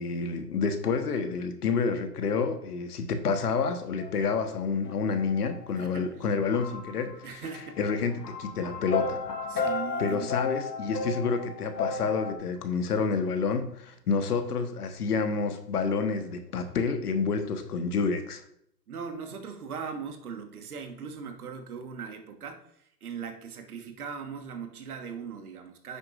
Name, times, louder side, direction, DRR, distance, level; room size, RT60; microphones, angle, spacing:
voice 1, 0.0-7.4 7.8-9.2 9.6-9.7 10.0-18.4, left 5 dB, 65° left, 7 dB, 1.3 m, -29 dB
sound 1, 4.0-4.6 4.9-5.9 6.3-12.4, left 4 dB, 80° left, 1.5 m, -34 dB
voice 2, 5.8-6.2 7.2-7.8 9.5-10.3 18.9-22.6 23.0-26.0, right 6 dB, 60° right, 6 dB, 1.5 m, -39 dB
9.6 x 7.0 x 2.5 m, 0.71 s
hypercardioid pair, 130°, 49 cm